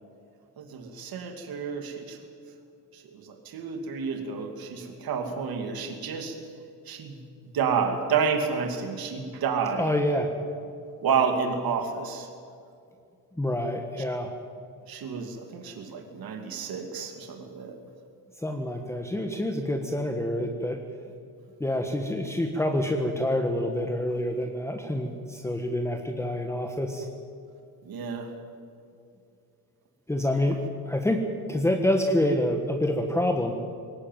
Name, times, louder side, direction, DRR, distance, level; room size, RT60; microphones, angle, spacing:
voice 1, 0.6-2.2 2.9-6.4 6.9-7.2 7.5-9.9 11.0-12.3 14.9-17.8 27.8-28.3, right 6 dB, 65° right, 5 dB, 2.6 m, -30 dB
voice 2, 9.8-10.3 13.3-14.3 18.4-20.8 21.6-27.1 30.1-31.2 31.5-33.5, left 1 dB, 5° left, 3 dB, 1.5 m, -27 dB
21.0 x 18.5 x 9.2 m, 2.5 s
cardioid pair, 140°, 38 cm